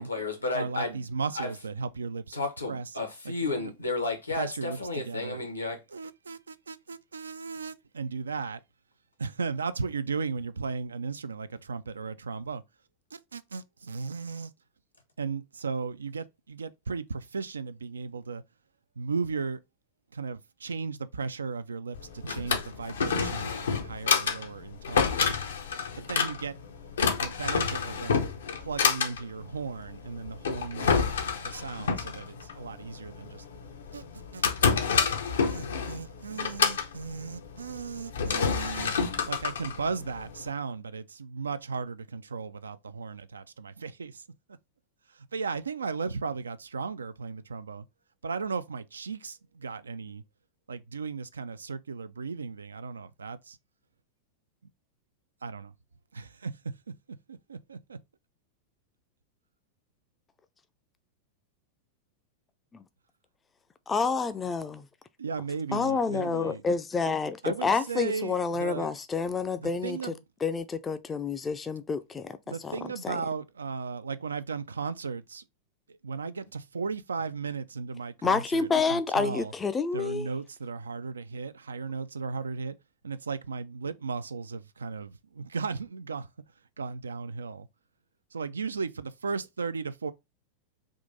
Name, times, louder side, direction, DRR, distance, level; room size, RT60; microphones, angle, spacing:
voice 1, 0.0-1.0 1.3-1.5 2.3-5.8, left 3 dB, 85° left, 1.1 m, -32 dB
voice 2, 0.5-2.4 2.7-2.9 3.2-3.6 4.4-5.4 5.9-8.6 9.2-12.6 13.1-14.5 15.2-18.4 19.0-19.6 20.1-25.1 26.1-26.6 27.1-28.2 28.6-33.4 33.9-34.0 34.3-34.7 35.5-38.9 39.2-44.2 45.3-47.8 48.2-50.2 50.7-53.6 55.4-55.7 56.1-56.5 57.3-58.0 65.2-66.6 67.4-68.9 69.6-70.2 72.5-75.4 75.9-79.5 79.9-82.8 83.0-86.3 86.8-87.7 88.3-90.1, right 5 dB, 75° right, 0.3 m, -36 dB
Drawer open or close, 21.9-40.5, left 6 dB, 65° left, 0.6 m, -29 dB
voice 3, 63.9-64.9 65.7-70.1 70.4-72.4 72.6-72.8 73.0-73.2 78.2-80.3, left 5 dB, 15° left, 0.4 m, -28 dB
3.6 x 2.5 x 3.8 m
figure-of-eight pair, 90°, 0 cm